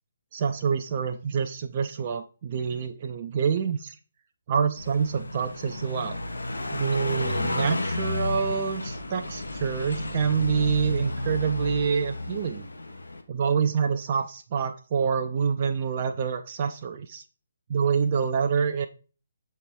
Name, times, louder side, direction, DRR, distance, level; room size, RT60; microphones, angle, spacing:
voice 1, 0.3-4.0 4.5-6.2 6.7-12.7 13.3-17.2 17.7-18.9, right 6 dB, 35° right, 6 dB, 0.4 m, -27 dB
Car passing by, 4.8-13.2, left 2 dB, 75° left, 1.0 m, -32 dB
7.2 x 4.2 x 3.5 m, 0.37 s
figure-of-eight pair, 140°, 0 cm